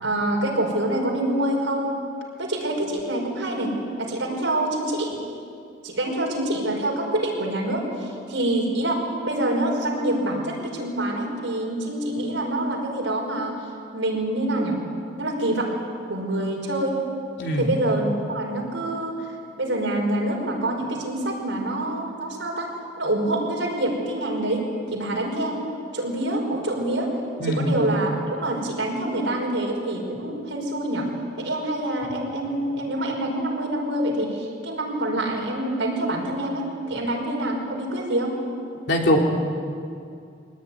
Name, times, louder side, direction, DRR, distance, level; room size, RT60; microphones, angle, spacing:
voice 1, 0.0-2.0 2.4-5.1 5.8-13.7 13.9-14.8 15.2-15.8 16.1-17.0 17.6-22.7 23.0-25.7 25.9-27.2 27.5-31.1 31.4-38.4, right 1 dB, 75° right, 0 dB, 5.6 m, -26 dB
voice 2, 17.4-17.7 27.4-27.8 38.9-39.2, equal, 65° left, 1 dB, 3.4 m, -21 dB
23.5 x 18.5 x 9.7 m, 2.4 s
head